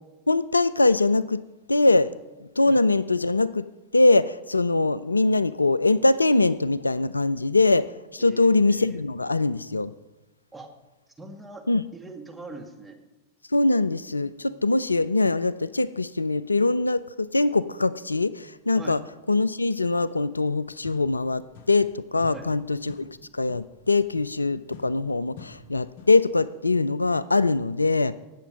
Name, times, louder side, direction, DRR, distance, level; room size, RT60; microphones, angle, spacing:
voice 1, 0.3-1.4 1.7-2.1 2.6-3.7 3.9-7.9 8.1-9.9 11.7-11.8 13.5-19.0 19.3-23.0 23.3-28.1, left 2 dB, 80° left, 18 dB, 0.3 m, -22 dB
voice 2, 8.2-9.0 10.5-10.7 11.2-11.6 11.9-13.0 18.8-19.0 22.3-22.5, right 2 dB, 5° right, 2 dB, 1.9 m, -42 dB
sound 1, 20.8-21.9 22.2-26.3, left 5 dB, 55° left, 1.1 m, -48 dB
17.5 x 7.0 x 5.3 m, 1.1 s
figure-of-eight pair, 90°, 0 cm